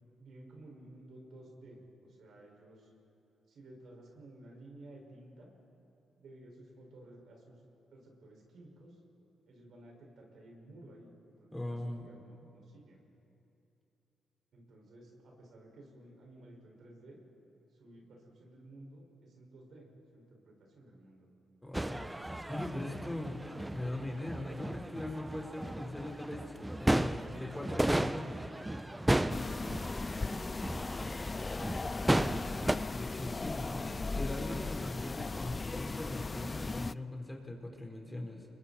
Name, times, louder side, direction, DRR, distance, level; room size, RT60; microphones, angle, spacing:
voice 1, 0.2-2.9 3.5-5.5 6.2-7.6 7.9-9.0 9.5-11.1 11.4-13.0 14.5-17.2 17.7-19.9 20.1-21.3 29.7-30.9 33.0-34.0, right 1 dB, 65° right, -1 dB, 5.7 m, -55 dB
voice 2, 11.5-12.1 21.6-22.1 22.5-23.4 23.7-26.4 26.8-28.4 32.9-38.5, left 1 dB, 10° left, 1 dB, 4.6 m, -40 dB
sound 1, 21.7-32.8, right 1 dB, 15° right, 0.9 m, -34 dB
sound 2, 29.3-36.9, left 3 dB, 35° left, 0.4 m, -37 dB
29.5 x 22.5 x 4.4 m, 2.8 s
hypercardioid pair, 40°, 0 cm